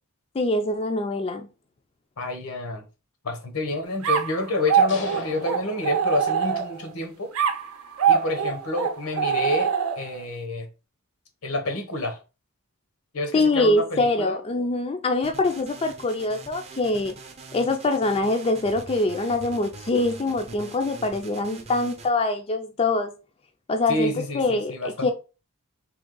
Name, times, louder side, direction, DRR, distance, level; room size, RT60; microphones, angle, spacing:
voice 1, 0.3-1.5 13.3-17.2 17.5-23.1 23.7-24.8 25.0-25.1, left 2 dB, 25° left, 0.4 m, -24 dB
voice 2, 2.2-2.8 3.2-7.3 8.1-10.7 11.4-12.2 13.1-14.4 23.9-25.1, left 2 dB, 85° left, 1.1 m, -29 dB
sound 1, 4.0-6.9 7.4-10.2, right 7 dB, 80° right, 0.6 m, -24 dB
sound 2, 4.9-6.7, left 4 dB, 60° left, 0.7 m, -40 dB
sound 3, 15.2-22.1, right 3 dB, 30° right, 0.6 m, -43 dB
3.6 x 2.8 x 3.8 m
head